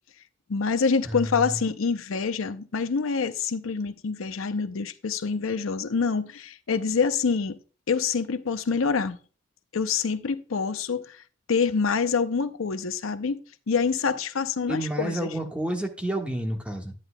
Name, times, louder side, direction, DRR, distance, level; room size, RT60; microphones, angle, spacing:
voice 1, 0.5-7.6 7.9-9.2 9.7-11.2 11.5-13.4 13.7-15.3, left 5 dB, 85° left, 0.6 m, -26 dB
voice 2, 1.0-1.6 14.7-16.9, right 1 dB, 5° right, 1.4 m, -30 dB
11.0 x 9.9 x 2.2 m
head